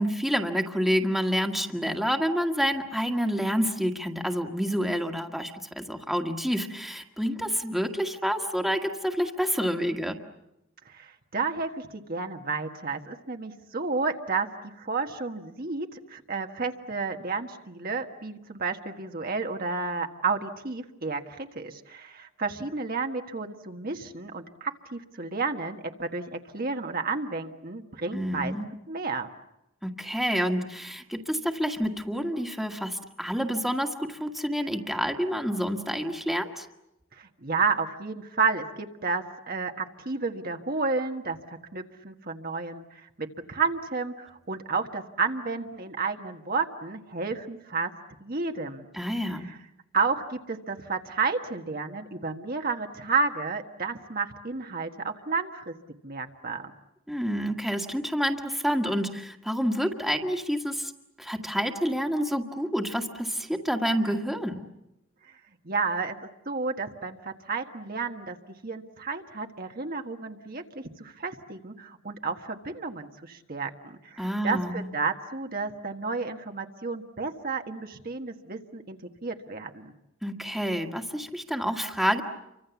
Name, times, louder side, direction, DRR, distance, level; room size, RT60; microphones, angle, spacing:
voice 1, 0.0-10.2 28.1-28.7 29.8-36.7 48.9-49.5 57.1-60.9 61.2-64.6 74.2-74.9 80.2-82.2, equal, ahead, 3 dB, 1.7 m, -28 dB
voice 2, 10.8-14.5 14.8-28.5 28.9-29.3 37.1-47.9 48.2-48.9 49.4-49.6 49.9-55.7 56.0-56.7 65.6-66.2 66.4-68.4 68.6-79.9, right 4 dB, 45° right, 4 dB, 1.5 m, -31 dB
29.5 x 24.5 x 7.1 m, 0.87 s
head